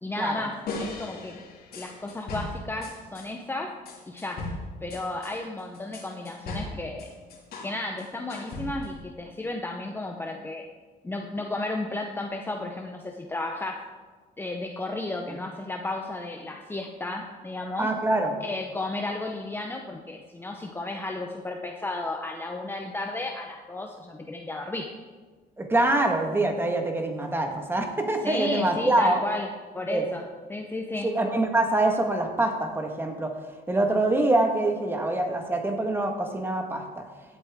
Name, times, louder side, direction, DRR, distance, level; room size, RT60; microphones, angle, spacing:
voice 1, 0.0-1.4 1.7-3.7 4.1-4.5 4.8-7.1 7.6-10.6 11.0-13.8 14.4-17.9 18.4-24.9 28.2-30.2 30.5-31.1, left 2 dB, 15° left, 2 dB, 0.8 m, -33 dB
sound 1, 0.7-3.3 3.9-7.7 8.0-9.0, left 2 dB, 65° left, 2.6 m, -37 dB
voice 2, 17.8-18.3 25.6-29.2 29.9-30.0 31.0-33.4 33.7-37.0, right 2 dB, 15° right, 4 dB, 1.6 m, -25 dB
16.0 x 8.5 x 3.6 m, 1.4 s
cardioid pair, 110°, 17 cm